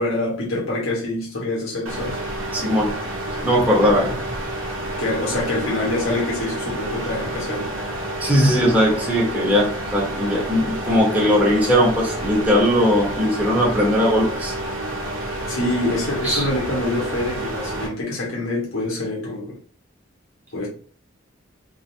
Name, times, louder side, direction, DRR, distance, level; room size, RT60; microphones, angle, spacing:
voice 1, 0.0-2.2 5.0-7.7 15.5-19.6 20.5-20.7, left 2 dB, 80° left, 1.6 m, -25 dB
sound 1, 1.9-17.9, right 1 dB, 80° right, 1.0 m, -29 dB
voice 2, 2.5-2.9 3.4-4.2 8.2-14.5 16.2-16.5, equal, 10° right, 1.2 m, -19 dB
4.0 x 2.8 x 2.8 m
head